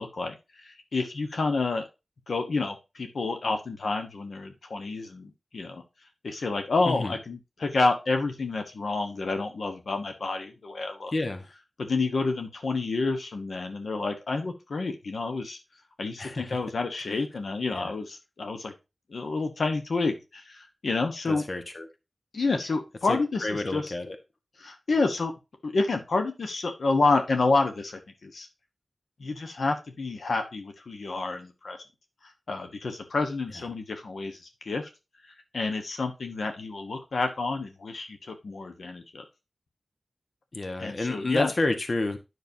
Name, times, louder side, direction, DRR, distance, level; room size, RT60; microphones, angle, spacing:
voice 1, 0.0-1.8 2.3-5.8 6.2-11.1 11.8-15.6 16.0-18.7 19.1-21.4 22.3-23.9 24.6-25.3 25.6-28.5 29.2-31.8 32.2-34.9 35.2-39.2 40.8-41.5, left 3 dB, 80° left, 5 dB, 1.3 m, -29 dB
voice 2, 11.1-11.5 16.2-16.6 16.9-17.0 17.8-17.9 21.3-21.9 23.1-24.2 40.5-42.2, left 2 dB, 50° left, 7 dB, 1.4 m, -30 dB
9.6 x 6.3 x 2.8 m, 0.26 s
wide cardioid pair, 85°, 0 cm